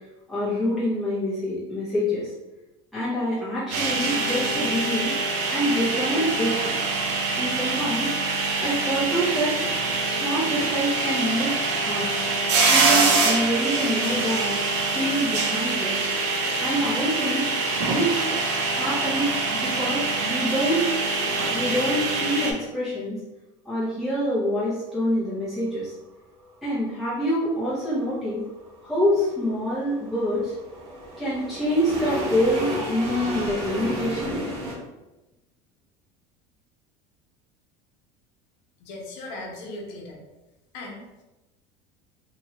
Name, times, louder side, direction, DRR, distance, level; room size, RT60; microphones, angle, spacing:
voice 1, 0.3-2.3 2.9-5.1 5.5-6.8 7.4-8.1 8.6-9.6 10.0-11.5 11.8-12.2 12.7-14.5 14.9-16.0 16.6-17.5 17.8-18.4 18.6-20.9 21.5-23.2 23.7-25.9 26.6-28.4 28.8-30.5 31.2-34.4, equal, ahead, -11 dB, 0.7 m, -26 dB
sound 1, 3.7-22.5, right 3 dB, 70° right, 0.7 m, -25 dB
sound 2, 27.8-34.7, right 1 dB, 35° right, 0.8 m, -33 dB
voice 2, 38.8-40.2 40.7-41.2, left 2 dB, 60° left, 0 dB, 0.8 m, -38 dB
2.9 x 2.8 x 2.8 m, 1.0 s
cardioid pair, 170°, 16 cm